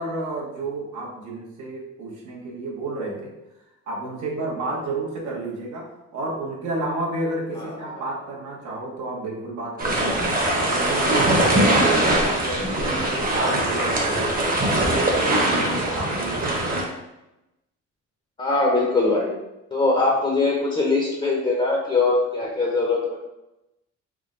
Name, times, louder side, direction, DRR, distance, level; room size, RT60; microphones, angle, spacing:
voice 1, 0.0-3.3 3.9-10.4 10.8-14.3 14.6-16.6, right 2 dB, 75° right, -2 dB, 1.1 m, -31 dB
voice 2, 7.6-8.0 18.4-19.3 19.7-23.2, left 3 dB, 20° left, -2 dB, 0.7 m, -22 dB
sound 1, 9.8-16.8, right 1 dB, 30° right, 0.9 m, -22 dB
3.5 x 2.1 x 3.7 m, 0.94 s
cardioid pair, 90°, 30 cm